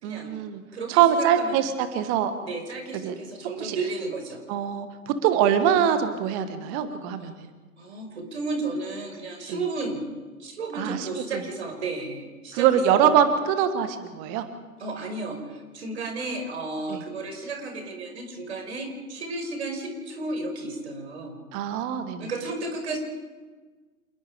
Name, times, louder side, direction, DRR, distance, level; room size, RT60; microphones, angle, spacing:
voice 1, 0.0-0.6 0.9-2.3 3.0-3.1 3.6-3.8 4.5-7.5 10.7-11.4 12.5-14.4 16.9-17.0 21.5-22.3, right 9 dB, 20° right, 10 dB, 1.4 m, -23 dB
voice 2, 0.7-1.7 2.4-4.4 7.8-10.0 10.4-12.7 12.9-13.1 14.8-21.4 22.2-23.0, right 3 dB, 50° right, 4 dB, 5.7 m, -33 dB
28.0 x 20.5 x 5.1 m, 1.3 s
figure-of-eight pair, 125°, 44 cm